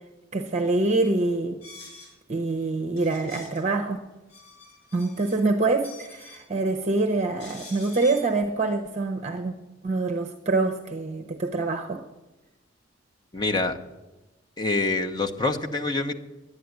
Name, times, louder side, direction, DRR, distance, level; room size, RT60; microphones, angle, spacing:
voice 1, 0.3-1.6 2.3-4.0 4.9-9.5 9.8-12.1, right 3 dB, 35° right, 6 dB, 0.8 m, -25 dB
sound 1, 1.6-2.1 3.0-3.6 4.1-5.4 5.7-6.5 7.4-8.3, left 2 dB, 65° left, 6.5 m, -46 dB
voice 2, 13.3-13.8 14.6-16.2, left 3 dB, 20° left, 3 dB, 1.0 m, -26 dB
11.0 x 10.0 x 9.4 m, 1.1 s
head